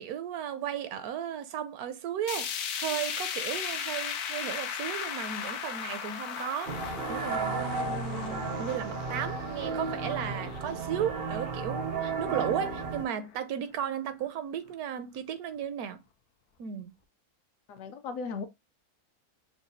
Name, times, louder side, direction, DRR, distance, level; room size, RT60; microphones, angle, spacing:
voice 1, 0.0-16.0 16.6-16.9, right 9 dB, 80° right, 1.1 m, -35 dB
sound 1, 2.3-12.4 12.8-12.9 13.3-13.4 14.3-14.4, left 8 dB, 85° left, 1.1 m, -37 dB
sound 2, 6.7-13.0, right 4 dB, 65° right, 0.6 m, -34 dB
voice 2, 17.7-18.4, left 5 dB, 70° left, 0.9 m, -36 dB
5.9 x 2.2 x 2.6 m
omnidirectional pair, 1.6 m